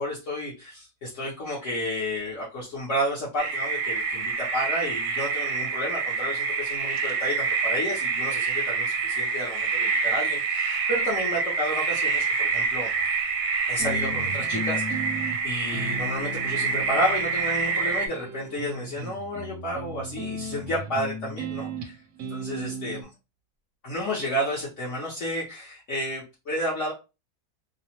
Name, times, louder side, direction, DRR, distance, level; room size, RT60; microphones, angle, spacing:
voice 1, 0.0-12.9 13.7-21.9 22.3-23.1 23.8-26.9, equal, 60° left, -6 dB, 1.0 m, -31 dB
sound 1, 3.4-18.1, right 5 dB, 85° right, 1.1 m, -27 dB
sound 2, 13.8-23.0, right 2 dB, 70° right, 0.8 m, -36 dB
2.8 x 2.0 x 2.8 m, 0.28 s
omnidirectional pair, 1.6 m